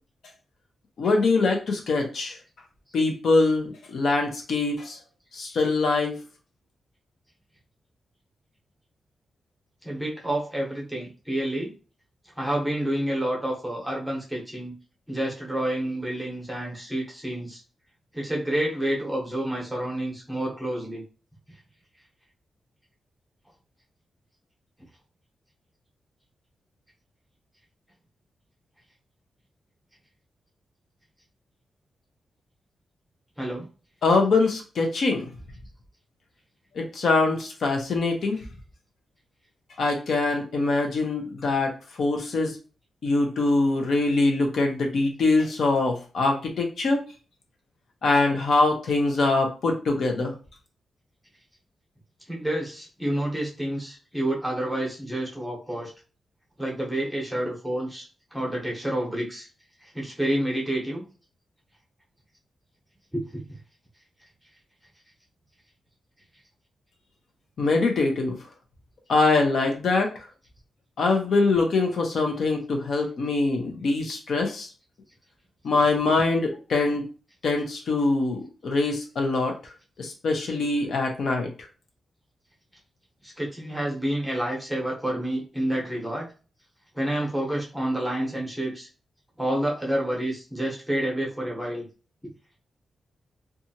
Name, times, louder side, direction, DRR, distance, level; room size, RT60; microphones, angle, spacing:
voice 1, 1.0-2.4 2.9-5.0 5.3-6.2 34.0-35.3 36.7-38.4 39.8-41.7 42.0-42.6 43.0-47.0 48.0-50.3 67.6-68.3 69.1-70.3 71.0-74.7 75.6-77.1 77.4-79.5 80.0-81.5, left 3 dB, 65° left, 2 dB, 0.6 m, -23 dB
voice 2, 9.8-11.7 12.4-14.7 15.1-17.6 18.1-21.0 33.4-33.7 52.3-55.9 56.6-58.0 58.3-59.5 59.8-61.0 63.1-63.6 83.2-86.3 86.9-88.9 89.4-91.9, right 1 dB, ahead, -3 dB, 0.8 m, -29 dB
2.7 x 2.3 x 2.7 m, 0.36 s
wide cardioid pair, 150°, 0 cm